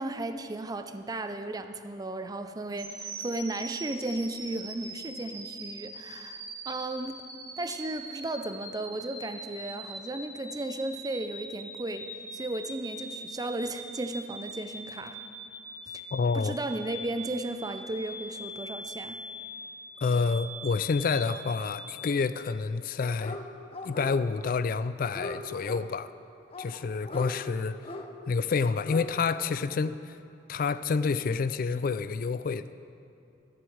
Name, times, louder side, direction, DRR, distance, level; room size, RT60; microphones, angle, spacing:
voice 1, 0.0-7.2 7.6-15.2 16.3-19.2, right 2 dB, 20° right, 9 dB, 0.5 m, -35 dB
sound 1, 2.8-22.1, right 1 dB, 50° right, 2.7 m, -42 dB
voice 2, 16.1-16.6 20.0-23.4 23.8-26.1 26.6-27.8 28.3-30.2 30.5-32.7, left 4 dB, 50° left, 14 dB, 0.3 m, -28 dB
Dog, 23.0-23.4 23.7-24.5 24.8-25.8 26.5-27.3 27.8-28.1 28.6-29.1 29.4-29.5, left 2 dB, 30° left, 0.8 m, -40 dB
12.0 x 7.7 x 7.9 m, 2.7 s
head